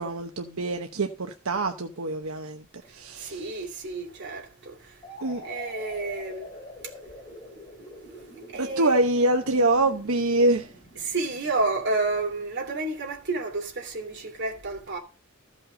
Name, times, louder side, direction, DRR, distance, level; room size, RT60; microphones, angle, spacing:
voice 1, 0.0-3.8 5.2-5.4 8.6-10.8, right 2 dB, 80° right, 1.0 m, -25 dB
voice 2, 3.3-4.4 5.4-6.5 8.5-9.0 11.0-15.0, right 3 dB, 55° right, 2.9 m, -30 dB
sound 1, 5.0-12.7, left 1 dB, 25° left, 3.4 m, -45 dB
14.5 x 5.5 x 5.1 m
head